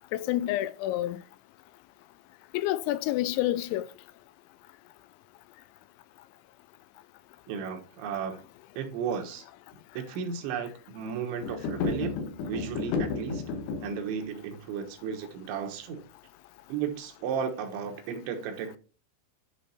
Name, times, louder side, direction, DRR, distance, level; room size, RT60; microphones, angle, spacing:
voice 1, 0.1-1.2 2.5-3.9, left 14 dB, 90° left, 3.0 m, -28 dB
voice 2, 7.5-8.4 8.8-9.4 10.0-12.1 12.5-13.4 13.8-16.0 16.7-18.8, right 6 dB, 80° right, 3.6 m, -34 dB
sound 1, 11.4-14.0, left 4 dB, 70° left, 3.2 m, -32 dB
10.0 x 4.4 x 4.2 m
omnidirectional pair, 5.2 m